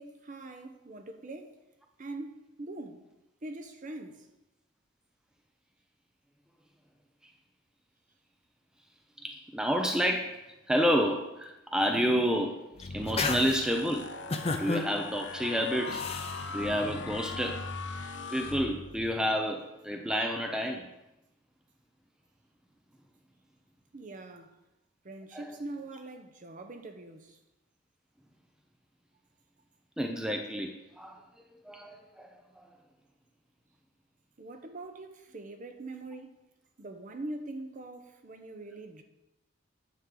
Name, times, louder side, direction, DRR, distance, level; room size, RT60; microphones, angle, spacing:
voice 1, 0.0-1.6 2.0-3.1 3.4-4.3 23.9-24.6 25.0-27.4 34.4-36.4 36.8-39.0, right 2 dB, 40° right, 0.7 m, -43 dB
voice 2, 9.2-10.4 10.7-14.1 14.5-16.2 16.5-17.7 18.3-20.9 25.3-25.6 30.0-31.2 31.6-32.4, equal, 5° right, 0.5 m, -30 dB
sound 1, 11.9-12.4 12.8-13.6 14.3-14.9 15.9-16.4, left 3 dB, 30° left, 0.7 m, -32 dB
sound 2, 12.7-19.2, left 4 dB, 60° left, 0.8 m, -40 dB
9.7 x 7.2 x 3.8 m
head